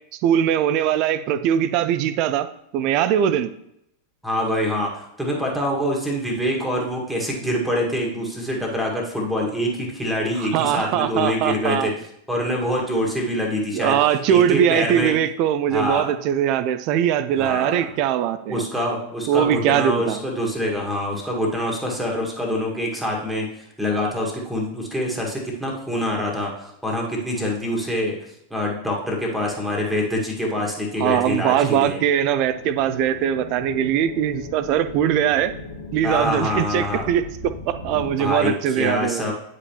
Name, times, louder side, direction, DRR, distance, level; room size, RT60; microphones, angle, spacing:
voice 1, 0.2-2.5 2.7-3.5 10.4-11.9 13.7-18.6 19.3-20.2 31.0-35.5 35.9-39.3, right 10 dB, 40° right, 12 dB, 0.4 m, -21 dB
voice 2, 4.2-11.9 12.3-14.0 14.3-15.1 15.7-16.0 17.4-17.9 18.5-28.2 28.5-32.0 36.0-37.1 37.9-39.3, left 1 dB, ahead, -1 dB, 1.8 m, -25 dB
sound 1, 31.4-38.1, left 3 dB, 70° left, 1.2 m, -38 dB
9.5 x 5.0 x 3.0 m, 0.77 s
figure-of-eight pair, 90°, 0 cm